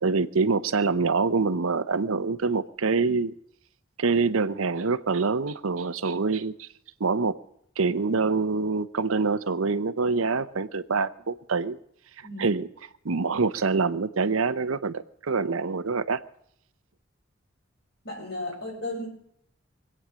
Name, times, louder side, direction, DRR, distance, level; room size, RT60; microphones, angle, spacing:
voice 1, 0.0-3.3 4.0-6.7 7.0-7.4 7.8-11.8 12.2-12.7 13.0-16.2, right 4 dB, 90° right, 14 dB, 0.8 m, -25 dB
voice 2, 18.0-19.1, left 1 dB, 55° left, 0 dB, 6.8 m, -34 dB
24.0 x 8.9 x 6.3 m, 0.69 s
head